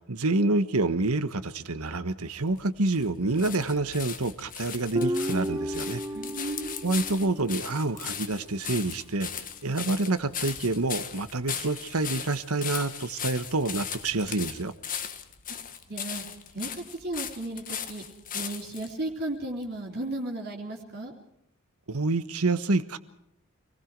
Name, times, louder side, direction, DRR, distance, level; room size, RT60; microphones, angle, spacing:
voice 1, 0.1-6.0 6.8-14.7 21.9-23.0, right 2 dB, 80° right, 12 dB, 1.4 m, -27 dB
sound 1, 2.4-18.9 19.6-19.7, left 8 dB, 40° left, 1.7 m, -38 dB
Guitar, 4.9-8.2, equal, 15° right, 0.9 m, -33 dB
voice 2, 6.1-6.8 15.9-16.2 16.5-18.0 18.3-21.1, right 1 dB, 45° right, -1 dB, 3.3 m, -35 dB
28.0 x 20.0 x 4.8 m, 0.77 s
head